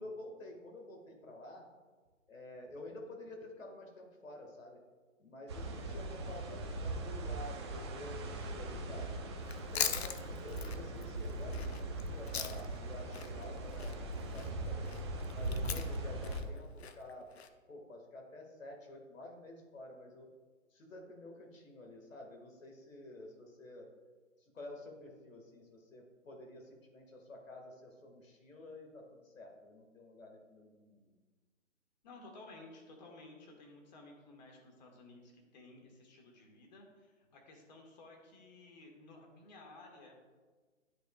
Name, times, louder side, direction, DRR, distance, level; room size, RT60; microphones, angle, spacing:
voice 1, 0.0-1.7 2.3-4.8 5.2-9.2 9.5-14.9 15.3-17.3 17.7-20.3 20.7-23.9 24.4-31.1, left 1 dB, 85° left, 2 dB, 2.0 m, -50 dB
voice 2, 5.5-5.8 32.0-40.1, left 2 dB, 35° left, 1 dB, 1.7 m, -55 dB
sound 1, 5.5-16.4, right 1 dB, 20° right, 0.7 m, -40 dB
Chewing mastication, 9.4-12.8 13.1-17.5, left 7 dB, 55° left, 0.7 m, -40 dB
12.0 x 4.9 x 2.4 m, 1.4 s
hypercardioid pair, 155°, 39 cm